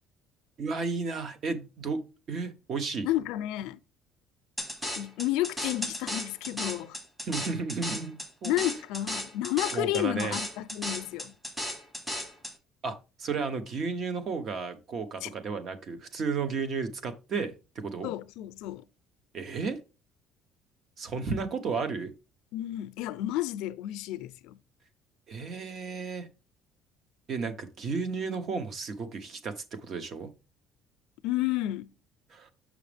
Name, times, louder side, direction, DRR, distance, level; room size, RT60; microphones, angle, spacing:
voice 1, 0.6-2.0 2.3-3.1 7.2-8.1 8.4-8.8 9.7-10.4 12.8-17.5 17.8-18.1 19.3-19.8 21.0-22.1 25.3-26.3 27.3-30.3 32.3-32.5, right 4 dB, 40° right, 0.9 m, -33 dB
voice 2, 3.0-3.8 5.0-7.0 8.4-11.3 15.2-15.3 18.0-18.9 22.5-24.6 31.2-31.9, left 15 dB, 80° left, 0.5 m, -31 dB
sound 1, 4.6-12.5, left 1 dB, 10° right, 1.3 m, -35 dB
6.3 x 6.1 x 3.4 m
cardioid pair, 175°, 0 cm